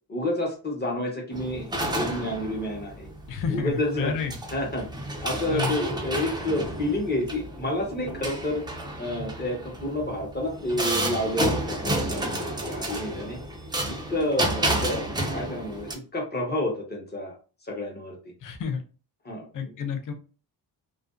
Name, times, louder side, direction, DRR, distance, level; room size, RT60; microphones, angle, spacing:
voice 1, 0.1-3.1 3.5-4.1 4.5-4.9 5.2-8.6 9.0-12.3 12.7-13.4 13.9-17.4 17.7-18.2 19.2-19.7, left 1 dB, 25° left, -1 dB, 0.9 m, -29 dB
sound 1, 1.3-15.9, right 1 dB, 10° right, 0.4 m, -31 dB
voice 2, 3.3-4.4 5.5-5.8 18.4-18.8 19.5-20.1, left 6 dB, 45° left, 6 dB, 0.5 m, -30 dB
2.4 x 2.2 x 2.3 m, 0.36 s
cardioid pair, 120°, 44 cm